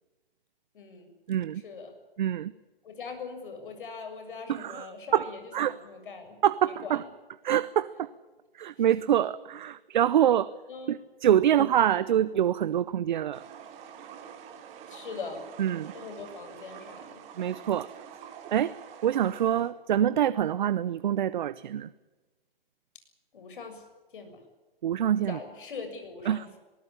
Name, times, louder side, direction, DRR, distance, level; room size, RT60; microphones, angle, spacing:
voice 1, 0.7-1.1 1.6-1.9 2.8-6.4 6.6-7.0 10.7-11.0 11.5-11.7 14.9-15.4 15.9-17.2 23.3-23.8 24.1-24.4 25.3-26.6, left 5 dB, 60° left, 6 dB, 7.1 m, -41 dB
voice 2, 1.3-1.6 2.2-2.5 4.5-4.9 5.1-5.7 6.4-7.0 7.4-8.1 8.6-10.5 10.9-13.4 15.6-15.9 17.4-17.9 18.5-18.7 19.0-21.9 24.8-25.4 26.3-26.5, right 10 dB, 55° right, 17 dB, 0.9 m, -25 dB
sound 1, 13.3-19.7, right 8 dB, 25° right, 2.4 m, -46 dB
20.0 x 19.0 x 9.9 m, 1.2 s
hypercardioid pair, 140°, 29 cm